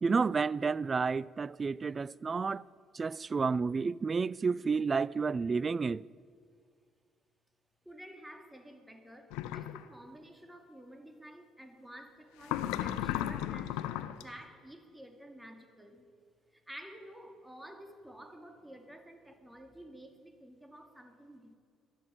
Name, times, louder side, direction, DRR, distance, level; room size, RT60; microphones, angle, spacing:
voice 1, 0.0-2.6 2.9-6.0, right 5 dB, 30° right, 0.3 m, -30 dB
voice 2, 7.8-16.1 16.5-21.5, equal, 10° right, 2.3 m, -51 dB
sound 1, 9.3-9.8 12.4-14.2, left 12 dB, 65° left, 0.5 m, -35 dB
19.5 x 12.5 x 5.2 m
figure-of-eight pair, 50°, 0 cm